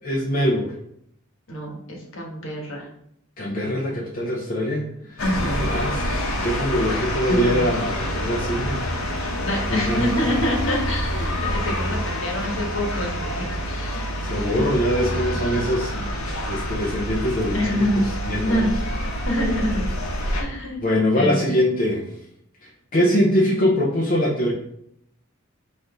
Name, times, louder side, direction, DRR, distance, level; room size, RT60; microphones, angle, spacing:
voice 1, 0.0-0.8 3.4-5.2 5.6-8.9 9.7-10.4 13.9-18.7 20.8-22.1 22.6-24.5, equal, 40° left, -4 dB, 0.6 m, -23 dB
voice 2, 1.5-2.9 5.2-5.7 7.3-7.6 9.4-14.0 14.6-14.7 15.9-16.1 17.5-18.0 18.4-18.7 19.3-19.8 20.4-20.8 21.1-21.6, equal, 65° left, -1 dB, 1.3 m, -26 dB
sound 1, 5.2-20.4, equal, 85° left, 0.9 m, -27 dB
4.2 x 2.6 x 4.7 m, 0.73 s
head